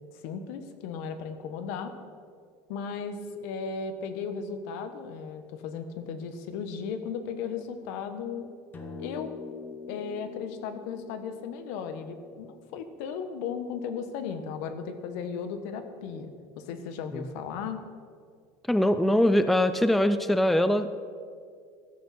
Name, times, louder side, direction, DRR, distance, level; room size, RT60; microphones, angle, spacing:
voice 1, 0.2-1.9 2.7-8.5 9.0-9.3 9.9-17.8, left 6 dB, 75° left, 9 dB, 1.3 m, -36 dB
sound 1, 8.7-13.3, left 4 dB, 25° left, 1.3 m, -44 dB
voice 2, 18.7-21.0, left 1 dB, ahead, 11 dB, 0.4 m, -23 dB
14.5 x 13.0 x 4.3 m, 2.2 s
cardioid pair, 155°, 8 cm